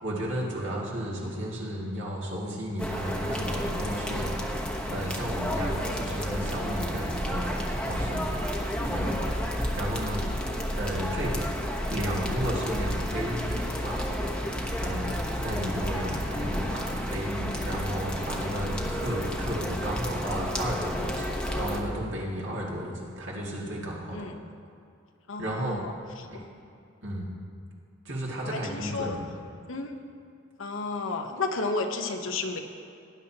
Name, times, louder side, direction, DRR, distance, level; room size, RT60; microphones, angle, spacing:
voice 1, 0.0-8.4 8.9-9.3 9.7-10.2 10.7-11.6 11.9-14.2 14.8-24.2 25.4-25.8 26.2-26.4 27.0-27.3 28.0-29.2, equal, 65° right, -4 dB, 2.4 m, -33 dB
sound 1, 2.8-21.8, equal, 5° left, 1.0 m, -31 dB
voice 2, 25.3-25.9 26.2-26.3 28.4-29.1 29.7-30.0 30.6-32.6, left 3 dB, 80° left, 5 dB, 1.0 m, -32 dB
18.5 x 10.5 x 2.9 m, 2.4 s
head